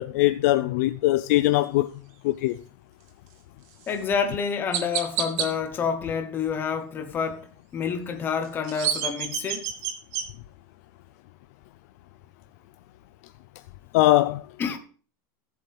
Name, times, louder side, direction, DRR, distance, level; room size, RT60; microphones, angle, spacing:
voice 1, 0.0-1.9 2.2-2.6 13.9-14.4, left 17 dB, 50° left, 0.4 m, -21 dB
Chirp tweet, 3.8-4.0 4.7-5.5 8.4-10.3, right 8 dB, 50° right, 1.5 m, -28 dB
voice 2, 3.9-9.7 14.6-14.8, left 6 dB, 20° left, 1.0 m, -28 dB
14.5 x 7.7 x 3.4 m
supercardioid pair, 170°, 11 cm